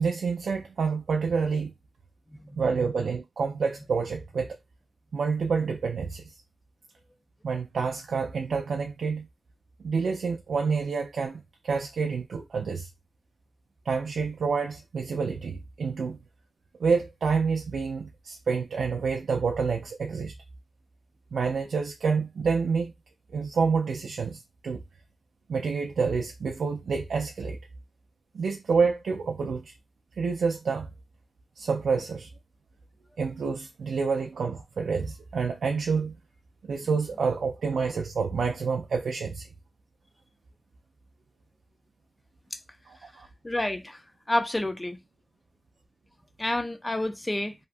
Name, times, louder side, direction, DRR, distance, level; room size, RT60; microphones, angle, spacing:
voice 1, 0.0-1.7 2.6-4.6 5.1-6.3 7.4-9.3 9.8-12.9 13.9-16.2 16.8-20.4 21.3-22.9 23.3-24.8 25.5-27.6 28.3-29.7 30.2-30.9 31.6-32.3 33.2-36.2 36.7-39.5 42.9-43.3, right 5 dB, 85° right, 0.3 m, -28 dB
voice 2, 2.3-2.6 42.5-42.6 43.4-45.0 46.4-47.5, left 1 dB, 20° left, 0.5 m, -29 dB
2.7 x 2.2 x 2.5 m
cardioid pair, 65°, 0 cm